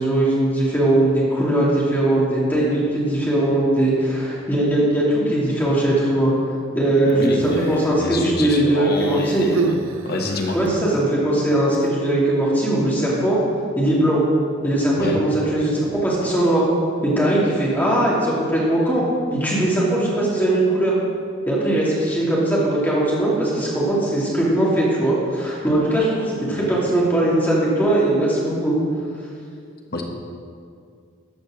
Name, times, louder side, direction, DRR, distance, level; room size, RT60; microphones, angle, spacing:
voice 1, 0.0-6.3 6.7-9.5 10.5-13.4 13.8-14.2 14.6-16.7 17.0-19.0 19.3-21.0 21.5-28.7, right 1 dB, 10° left, -6 dB, 2.5 m, -20 dB
voice 2, 7.1-9.8 10.0-10.6 15.0-15.2 29.9-30.0, left 2 dB, 50° left, 2 dB, 1.2 m, -26 dB
Human voice, 7.1-8.0 8.9-10.8 11.7-11.9, right 3 dB, 90° right, 0.6 m, -30 dB
13.5 x 5.1 x 6.3 m, 2.3 s
head